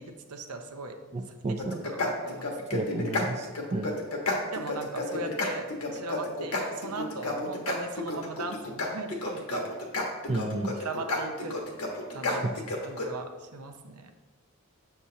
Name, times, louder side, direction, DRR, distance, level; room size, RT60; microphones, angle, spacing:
voice 1, 0.0-1.0 1.7-2.8 4.5-9.7 10.8-11.6 12.1-12.4 12.8-14.1, right 3 dB, 85° right, 5 dB, 0.7 m, -38 dB
voice 2, 1.1-1.8 2.7-3.9 10.3-10.7 12.3-12.5, right 2 dB, 30° right, 5 dB, 0.3 m, -32 dB
sound 1, 1.6-13.1, left 2 dB, 85° left, 1.2 m, -31 dB
7.3 x 6.8 x 2.8 m, 1.3 s
head